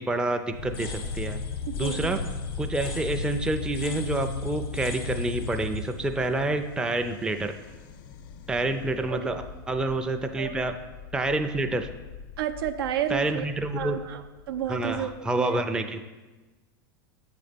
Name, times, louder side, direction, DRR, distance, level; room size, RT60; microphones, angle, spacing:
voice 1, 0.0-1.4 1.8-2.2 2.6-7.5 8.5-10.7 11.1-11.9 13.1-14.0 14.7-16.0, right 2 dB, 5° right, 6 dB, 0.4 m, -28 dB
sound 1, 0.5-7.4, left 3 dB, 85° left, 1.0 m, -35 dB
sound 2, 0.6-15.2, left 7 dB, 60° left, 0.5 m, -44 dB
voice 2, 1.7-2.1 9.1-9.4 10.4-10.6 12.4-13.5 13.8-14.2 14.5-15.6, right 10 dB, 80° right, 9 dB, 0.5 m, -31 dB
7.4 x 4.1 x 5.1 m, 1.2 s
hypercardioid pair, 115°, 12 cm